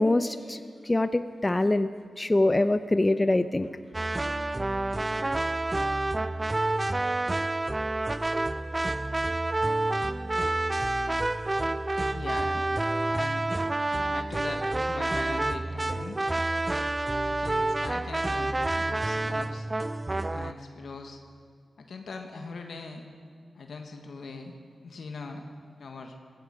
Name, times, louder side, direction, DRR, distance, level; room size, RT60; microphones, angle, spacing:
voice 1, 0.0-1.9 2.2-3.7, left 2 dB, 25° left, 11 dB, 0.6 m, -24 dB
sound 1, 3.9-20.5, right 2 dB, 30° right, 0.5 m, -28 dB
voice 2, 12.1-12.6 13.1-13.5 14.1-16.2 17.3-19.7 20.3-21.2 21.8-23.0 23.5-24.5 24.8-25.4 25.8-26.2, left 4 dB, 75° left, 4 dB, 1.4 m, -41 dB
17.0 x 16.0 x 5.1 m, 2.2 s
cardioid pair, 45°, 0 cm